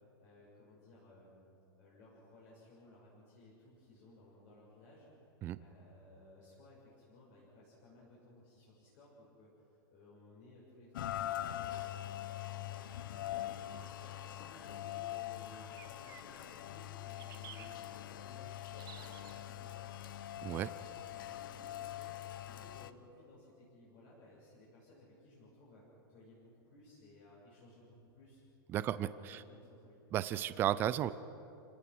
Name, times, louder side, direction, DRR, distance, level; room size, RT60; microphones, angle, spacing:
voice 1, 0.2-1.4 1.8-5.1 5.6-20.0 20.7-22.1 22.4-25.8 26.1-28.4 28.9-30.0, left 1 dB, 35° left, -6 dB, 6.6 m, -59 dB
Rain, 10.9-22.9, left 13 dB, 55° left, 0.9 m, -43 dB
sound 1, 12.7-12.8 15.7-16.6 17.2-17.8 18.8-19.5, right 10 dB, 60° right, 1.9 m, -54 dB
voice 2, 28.7-29.4 30.1-31.1, right 12 dB, 15° right, 15 dB, 0.5 m, -34 dB
29.0 x 18.0 x 6.2 m, 2.6 s
supercardioid pair, 170°, 13 cm